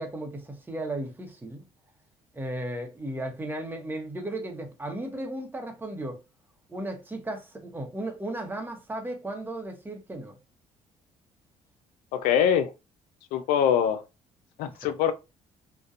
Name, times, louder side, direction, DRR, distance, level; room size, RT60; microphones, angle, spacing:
voice 1, 0.0-1.6 2.3-6.2 6.7-10.4 14.8-14.9, right 1 dB, 15° right, 0.8 m, -35 dB
voice 2, 12.1-12.7 13.3-14.0 14.6-15.1, left 9 dB, 90° left, 0.4 m, -23 dB
2.6 x 2.2 x 2.4 m
cardioid pair, 80°, 14 cm